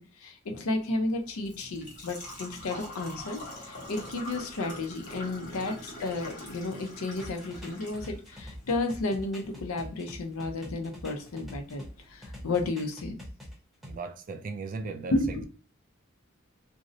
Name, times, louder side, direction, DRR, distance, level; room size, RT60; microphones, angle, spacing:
voice 1, 0.0-13.2 15.1-15.5, left 2 dB, 85° left, 0.6 m, -32 dB
Engine / Trickle dribble / Fill (with liquid), 0.8-12.7, left 1 dB, 40° left, 1.0 m, -45 dB
sound 1, 7.2-11.9 12.2-13.9, left 1 dB, ahead, 0.7 m, -44 dB
voice 2, 13.8-15.1, right 4 dB, 40° right, 0.3 m, -37 dB
2.6 x 2.0 x 2.6 m
head